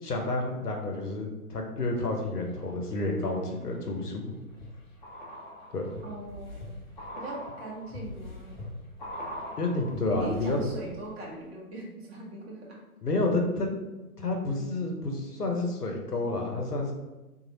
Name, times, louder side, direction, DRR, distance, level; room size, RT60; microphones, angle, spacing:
voice 1, 0.0-4.3 5.7-5.9 9.6-10.6 13.0-13.7 14.2-16.9, left 2 dB, 85° left, 2 dB, 0.7 m, -30 dB
sound 1, 2.0-2.7 3.2-11.1 11.3-11.4, left 1 dB, 30° left, 0.6 m, -42 dB
voice 2, 6.0-6.7 7.1-8.6 10.1-12.8, right 1 dB, 45° right, -3 dB, 0.9 m, -40 dB
2.9 x 2.5 x 2.8 m, 1.1 s
figure-of-eight pair, 125°, 45 cm